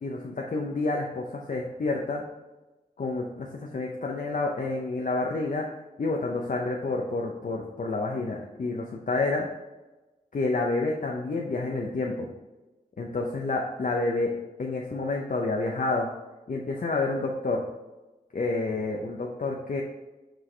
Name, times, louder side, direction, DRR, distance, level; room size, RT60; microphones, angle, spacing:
voice 1, 0.0-2.2 3.0-3.5 3.7-5.7 6.0-9.5 10.3-12.3 13.0-14.3 14.6-16.1 16.5-17.6 18.3-19.8, left 3 dB, 60° left, 0 dB, 0.7 m, -29 dB
6.1 x 4.7 x 3.3 m, 1.1 s
wide cardioid pair, 110°, 16 cm